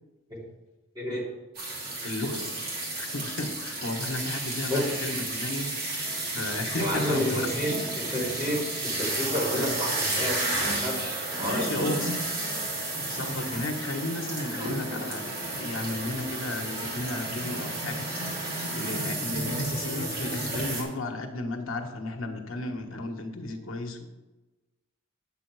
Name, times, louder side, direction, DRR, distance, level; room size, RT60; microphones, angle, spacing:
voice 1, 0.9-1.3 4.7-4.9 6.7-11.9, equal, 20° right, -5 dB, 3.0 m, -30 dB
sound 1, 1.5-20.8, right 2 dB, 50° right, 3.0 m, -32 dB
voice 2, 2.0-2.4 3.0-7.5 9.5-9.8 11.4-12.1 12.8-24.1, left 2 dB, 80° left, 3 dB, 1.3 m, -34 dB
9.1 x 7.9 x 4.7 m, 1.1 s
head